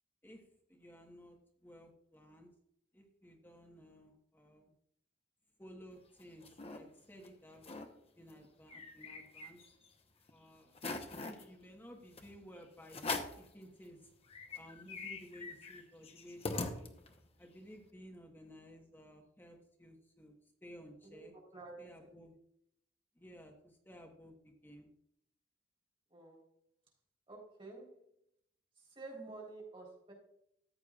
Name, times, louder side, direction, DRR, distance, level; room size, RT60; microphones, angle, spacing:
voice 1, 0.2-2.5 2.9-4.7 5.6-7.7 8.2-9.6 10.3-10.7 11.1-14.1 14.5-16.9 17.4-21.3 21.8-22.4 23.2-24.9, equal, 10° left, 1 dB, 1.3 m, -56 dB
sound 1, 6.0-6.8 7.2-7.3 7.6-7.9 8.3-9.9 10.3-10.4 10.7-11.5 12.2-12.3 12.9-13.5 14.0-14.1 14.3-17.3, left 3 dB, 35° left, 0.9 m, -42 dB
voice 2, 21.0-21.8 26.1-26.4 27.3-28.0 29.0-30.1, right 3 dB, 30° right, -1 dB, 3.8 m, -50 dB
14.0 x 8.1 x 2.4 m, 0.73 s
head